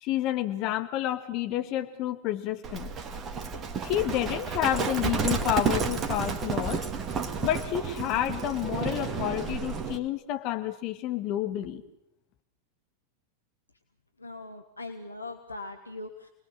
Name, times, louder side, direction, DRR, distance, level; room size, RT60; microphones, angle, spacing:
voice 1, 0.0-2.9 3.8-6.9 7.4-11.8, left 12 dB, 40° left, 7 dB, 1.9 m, -29 dB
Livestock farm animals working animals, 2.6-10.0, right 5 dB, 25° right, 2.0 m, -31 dB
voice 2, 14.2-16.3, left 2 dB, 80° left, 5 dB, 1.5 m, -40 dB
28.5 x 20.5 x 7.5 m, 0.81 s
figure-of-eight pair, 90°, 0 cm